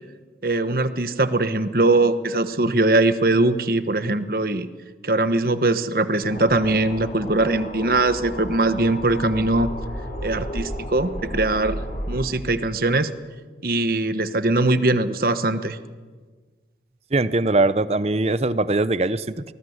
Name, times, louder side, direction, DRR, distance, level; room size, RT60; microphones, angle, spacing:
voice 1, 0.4-4.7 5.0-9.7 10.2-11.8 12.1-13.1 13.6-15.8, right 2 dB, 55° right, 11 dB, 1.2 m, -21 dB
sound 1, 6.2-12.2, equal, 50° left, 4.6 m, -33 dB
voice 2, 17.1-19.5, right 2 dB, 35° right, 15 dB, 0.7 m, -21 dB
24.0 x 20.0 x 8.1 m, 1.4 s
head